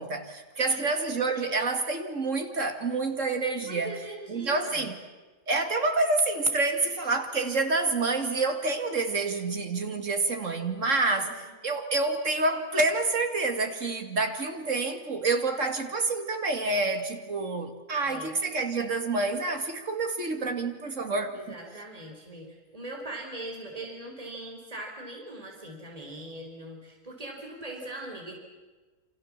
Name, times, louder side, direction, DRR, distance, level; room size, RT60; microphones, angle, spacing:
voice 1, 0.0-4.0 4.3-5.0 5.5-21.6, right 3 dB, 55° right, 6 dB, 2.7 m, -28 dB
voice 2, 3.6-4.9 11.1-11.5 18.1-18.3 21.3-28.4, right 1 dB, 25° right, 1 dB, 4.3 m, -41 dB
28.5 x 26.5 x 7.5 m, 1.3 s
omnidirectional pair, 1.5 m